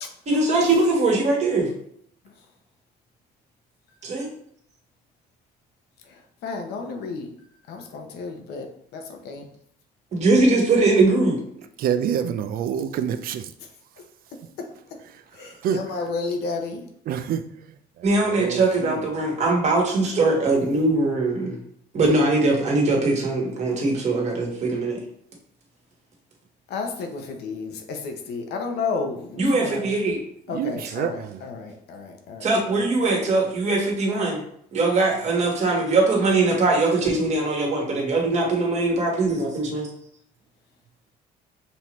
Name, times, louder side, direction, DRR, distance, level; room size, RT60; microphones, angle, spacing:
voice 1, 0.3-1.7 4.0-4.3 10.1-11.4 18.0-21.6 21.9-25.0 29.4-30.2 32.4-34.4 34.7-39.9, right 2 dB, 40° right, -1 dB, 1.5 m, -21 dB
voice 2, 6.4-7.3 7.7-9.4 15.4-16.9 26.7-29.9 30.5-32.8, left 4 dB, 75° left, 4 dB, 0.8 m, -32 dB
voice 3, 11.8-13.5 15.6-15.8 17.1-17.4 18.2-19.0 30.5-31.4, right 8 dB, 60° right, 10 dB, 0.4 m, -27 dB
5.5 x 2.8 x 3.1 m, 0.66 s
cardioid pair, 110°, 17 cm